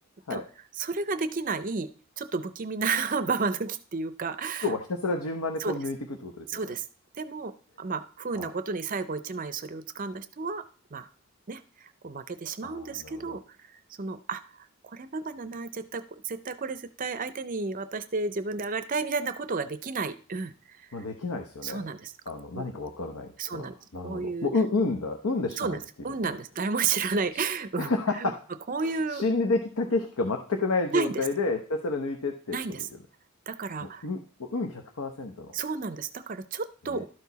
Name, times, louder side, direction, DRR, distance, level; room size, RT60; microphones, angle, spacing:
voice 1, 0.8-1.9 2.2-4.7 5.6-5.8 6.5-6.8 7.2-7.5 7.8-10.6 10.9-11.1 11.5-13.4 14.0-14.4 14.8-20.8 21.6-22.1 22.5-22.7 23.4-23.7 24.0-24.5 25.6-27.9 28.2-28.3 28.7-29.2 30.9-31.1 32.5-32.9 33.5-34.1 35.5-37.0, right 4 dB, 40° right, 11 dB, 0.5 m, -32 dB
voice 2, 4.6-6.0 6.2-6.7 8.3-8.5 12.6-13.3 20.9-21.8 22.3-25.8 26.2-26.3 27.8-28.4 28.8-32.9 33.8-35.5 36.9-37.1, left 3 dB, 85° left, 4 dB, 0.9 m, -30 dB
12.0 x 4.7 x 4.0 m, 0.40 s
head